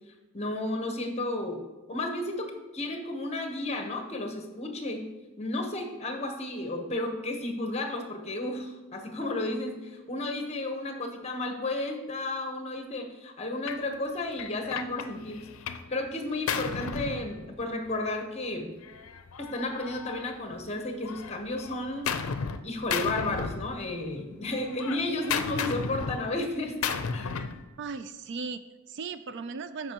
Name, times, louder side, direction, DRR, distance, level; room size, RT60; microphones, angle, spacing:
voice 1, 0.3-1.6 1.9-5.1 5.4-15.4 15.9-18.7 19.4-22.1 22.6-26.8 27.1-27.4, left 2 dB, 30° left, 4 dB, 1.0 m, -33 dB
Gunshot gunfire, 13.7-13.9 14.4-15.9 16.2-17.9 18.8-20.7 21.0-22.6 22.9-24.1 24.4-27.6, left 6 dB, 80° left, 0.5 m, -34 dB
voice 2, 27.8-29.9, right 4 dB, 55° right, 11 dB, 0.4 m, -37 dB
13.5 x 5.3 x 3.0 m, 1.2 s
head